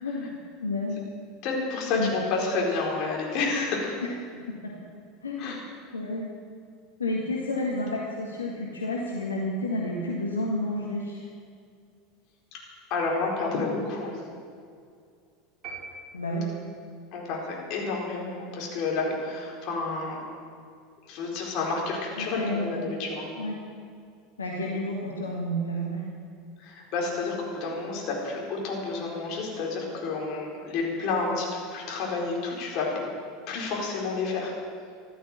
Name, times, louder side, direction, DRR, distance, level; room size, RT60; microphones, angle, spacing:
voice 1, 0.0-1.0 1.9-2.1 4.0-4.8 5.2-5.6 5.9-6.3 7.0-11.2 16.1-16.5 22.2-22.9 23.4-23.6 24.4-26.0, left 1 dB, 80° left, -2 dB, 1.9 m, -31 dB
voice 2, 1.4-4.0 5.4-5.6 12.9-14.2 17.1-20.2 21.1-23.3 26.6-32.9 33.5-34.5, left 3 dB, 50° left, -2 dB, 4.7 m, -30 dB
sound 1, 15.6-16.9, right 4 dB, 35° right, 4.9 m, -42 dB
15.5 x 12.0 x 7.4 m, 2.3 s
figure-of-eight pair, 80°, 0 cm